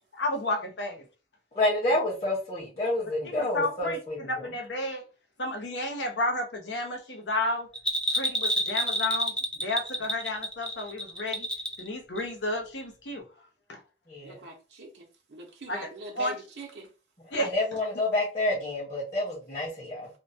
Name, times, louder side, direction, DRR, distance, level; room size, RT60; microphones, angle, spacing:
voice 1, 0.1-1.0 3.3-5.0 5.4-7.7 8.1-11.5 11.8-13.3 13.7-13.8 15.7-15.8 16.2-16.4 17.3-17.5, left 1 dB, 85° left, 0.8 m, -32 dB
voice 2, 1.5-4.5 14.1-14.4 17.4-20.1, left 1 dB, 40° left, 1.2 m, -29 dB
Bell, 7.7-11.9 12.2-12.3, equal, 5° left, 0.3 m, -29 dB
voice 3, 14.2-16.9, right 1 dB, 70° right, 0.6 m, -41 dB
2.8 x 2.2 x 2.7 m
head